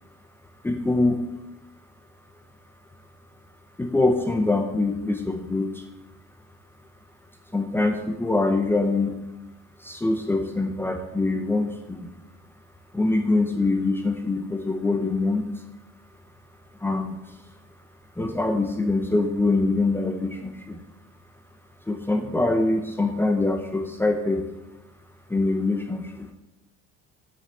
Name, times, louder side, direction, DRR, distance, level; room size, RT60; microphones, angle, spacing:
voice 1, 0.6-1.2 3.8-5.8 7.5-9.2 9.8-12.1 12.9-15.5 16.8-17.2 18.2-20.8 21.9-24.4 25.3-26.3, left 2 dB, 5° left, 4 dB, 0.7 m, -24 dB
7.2 x 6.0 x 6.9 m, 0.93 s
cardioid pair, 145°, 29 cm